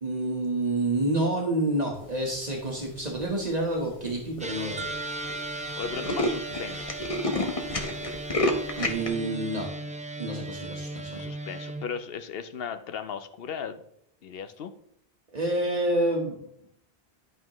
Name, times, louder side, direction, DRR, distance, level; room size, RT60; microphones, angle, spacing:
voice 1, 0.0-4.9 8.7-9.7 10.2-11.3 15.3-16.4, right 1 dB, 40° right, 0 dB, 1.3 m, -28 dB
Tools, 3.0-3.4 4.1-4.2 4.4-4.5 4.7-4.9 5.2-5.3 5.6-9.1, left 1 dB, 35° left, 1.0 m, -29 dB
sound 1, 4.4-11.8, right 2 dB, 10° right, 0.3 m, -37 dB
sound 2, 4.8-8.8, right 2 dB, 60° right, 1.1 m, -42 dB
voice 2, 5.7-6.9 11.0-13.8 14.2-14.7, left 7 dB, 70° left, 10 dB, 0.8 m, -36 dB
11.0 x 5.6 x 3.0 m, 0.72 s
omnidirectional pair, 1.1 m